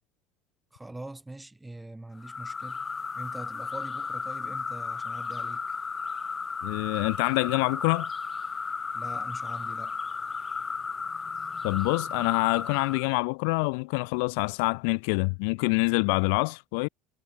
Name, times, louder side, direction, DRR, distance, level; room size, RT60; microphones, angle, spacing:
voice 1, 0.7-2.9 3.1-5.8 8.9-10.0, right 2 dB, 10° right, 7.6 m, -43 dB
sound 1, 2.2-13.1, left 5 dB, 25° left, 1.8 m, -34 dB
voice 2, 6.6-8.1 11.6-16.9, left 34 dB, 65° left, 0.5 m, -26 dB
figure-of-eight pair, 60°, 0 cm